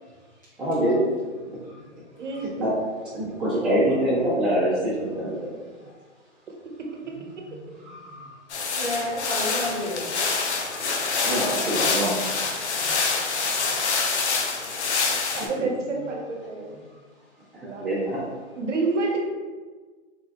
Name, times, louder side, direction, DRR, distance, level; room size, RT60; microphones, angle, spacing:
voice 1, 0.6-1.0 2.6-2.7 3.1-5.4 7.8-8.3 10.6-12.1 15.4-15.7 17.7-18.2, right 1 dB, ahead, -14 dB, 1.1 m, -25 dB
voice 2, 2.2-2.5 6.6-7.2 15.3-16.8 17.6-17.8 18.5-19.2, right 3 dB, 75° right, 1 dB, 0.9 m, -29 dB
sound 1, 8.5-15.5, left 4 dB, 65° left, 0.8 m, -26 dB
voice 3, 8.7-10.5 12.7-12.9 13.6-13.7 14.1-14.3 16.8-17.0, left 1 dB, 15° left, -12 dB, 0.5 m, -33 dB
4.0 x 3.7 x 2.3 m, 1.4 s
hypercardioid pair, 165°, 36 cm